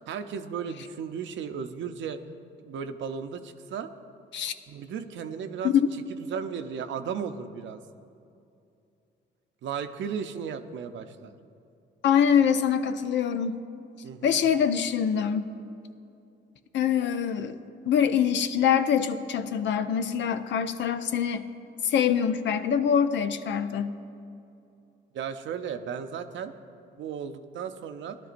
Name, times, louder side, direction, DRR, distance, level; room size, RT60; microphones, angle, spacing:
voice 1, 0.0-2.2 2.6-3.9 4.7-5.7 6.2-7.8 9.6-11.3 14.0-14.4 25.1-26.5 27.0-28.2, right 7 dB, 70° right, 9 dB, 0.6 m, -35 dB
voice 2, 12.0-13.6 14.2-15.5 16.7-17.6 17.9-21.4 21.8-23.9, left 8 dB, 65° left, 10 dB, 0.6 m, -24 dB
17.0 x 11.5 x 2.5 m, 2.6 s
cardioid pair, 90°, 20 cm